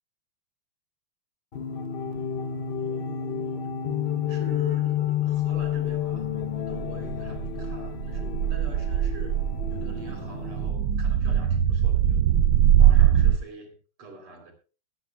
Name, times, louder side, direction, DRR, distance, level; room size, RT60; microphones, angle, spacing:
sound 1, 1.5-10.7, left 10 dB, 90° left, 0.5 m, -30 dB
voice 1, 2.8-6.3 6.7-9.4 9.7-12.2 12.8-14.5, right 3 dB, 90° right, 4.6 m, -45 dB
sound 2, 5.6-13.4, right 10 dB, 70° right, 1.4 m, -22 dB
23.0 x 10.5 x 2.4 m
omnidirectional pair, 2.3 m